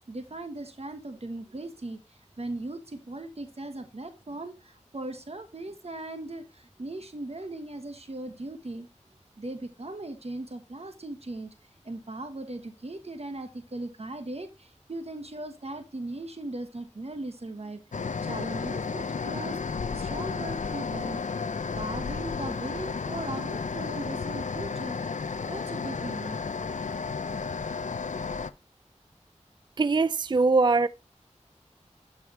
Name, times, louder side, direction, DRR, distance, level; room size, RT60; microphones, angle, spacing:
voice 1, 0.1-8.9 9.4-11.5 11.8-21.2 21.7-26.4, right 2 dB, 55° right, 1.3 m, -38 dB
sound 1, 17.9-28.5, left 5 dB, 80° left, 0.5 m, -32 dB
voice 2, 29.8-30.9, right 3 dB, 40° right, 0.3 m, -22 dB
12.0 x 4.8 x 3.1 m
wide cardioid pair, 50°, 12 cm